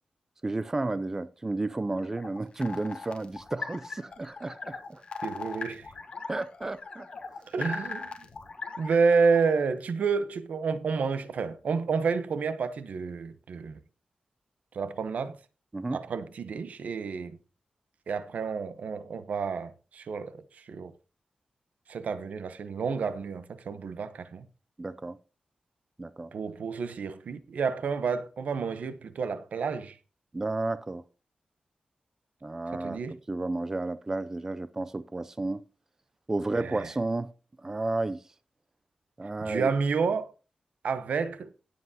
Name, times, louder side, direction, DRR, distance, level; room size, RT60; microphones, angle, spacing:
voice 1, 0.4-5.0 6.3-7.1 15.7-16.0 24.8-25.2 26.0-26.3 30.3-31.0 32.4-33.0 33.3-35.6 36.3-37.3 37.6-38.2 39.2-39.7, right 2 dB, 20° right, 0.4 m, -32 dB
sound 1, 2.0-9.5, left 4 dB, 45° left, 1.3 m, -39 dB
voice 2, 5.2-5.9 7.5-8.2 8.8-13.8 14.7-15.4 15.9-17.4 18.1-20.9 21.9-24.4 26.3-30.0 32.7-33.2 36.5-36.9 39.4-40.3 40.8-41.5, right 5 dB, 80° right, 0.8 m, -30 dB
17.0 x 7.7 x 2.8 m
wide cardioid pair, 165°, 2 cm